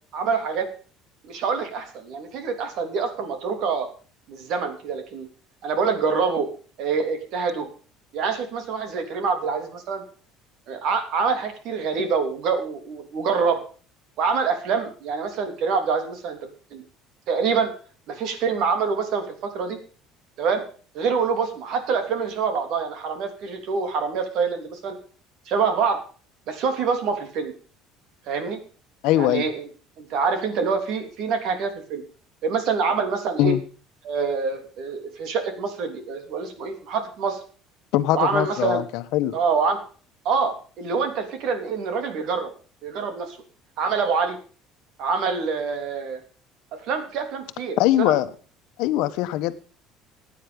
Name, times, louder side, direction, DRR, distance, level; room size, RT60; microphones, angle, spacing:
voice 1, 0.1-0.7 1.2-3.9 4.3-5.3 5.6-6.5 6.8-7.7 8.1-10.0 10.7-13.6 14.2-16.8 17.3-17.7 18.1-19.8 20.4-20.6 20.9-25.0 25.5-26.0 26.5-27.5 28.3-28.6 29.1-29.6 30.0-32.0 32.4-33.5 34.0-37.4 38.1-38.8 39.3-39.8 40.2-42.5 42.8-43.4 43.8-44.4 45.0-46.2 46.9-48.2, right 5 dB, 60° right, 3.3 m, -25 dB
voice 2, 29.0-29.5 33.4-33.6 37.9-39.4 47.8-48.3 48.8-49.6, left 14 dB, 70° left, 1.2 m, -21 dB
15.5 x 9.5 x 5.3 m
cardioid pair, 150°, 0 cm